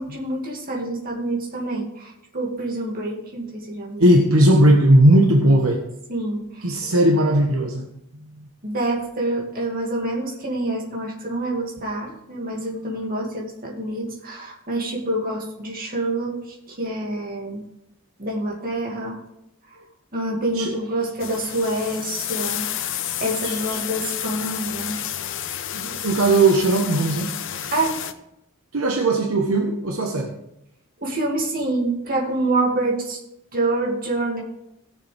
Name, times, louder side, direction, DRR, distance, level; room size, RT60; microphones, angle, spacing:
voice 1, 0.0-4.1 6.1-6.7 8.6-17.6 18.2-19.2 19.7-19.8 20.1-22.6 22.9-25.0 27.7-28.0 31.0-33.2 33.5-34.4, right 2 dB, 40° right, -1 dB, 2.3 m, -27 dB
voice 2, 4.0-5.8 6.6-7.8 8.1-8.5 20.5-20.7 23.4-23.8 25.7-27.3 28.7-30.3, right 1 dB, 65° right, 2 dB, 1.1 m, -18 dB
sound 1, 21.2-28.1, left 10 dB, 60° left, 0.7 m, -30 dB
17.5 x 6.8 x 3.4 m, 0.83 s
head